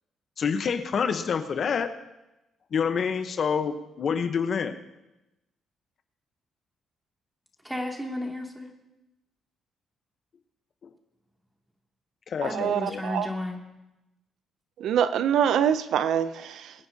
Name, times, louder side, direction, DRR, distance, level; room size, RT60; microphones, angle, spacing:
voice 1, 0.4-1.9 2.7-4.7 10.8-10.9 12.3-13.0, left 6 dB, 55° left, 1.0 m, -27 dB
voice 2, 7.6-8.7 12.4-13.6, left 1 dB, 10° right, 2.5 m, -33 dB
voice 3, 12.4-13.3 14.8-16.7, right 9 dB, 75° right, 0.5 m, -25 dB
24.0 x 9.6 x 2.8 m
cardioid pair, 90°, 0 cm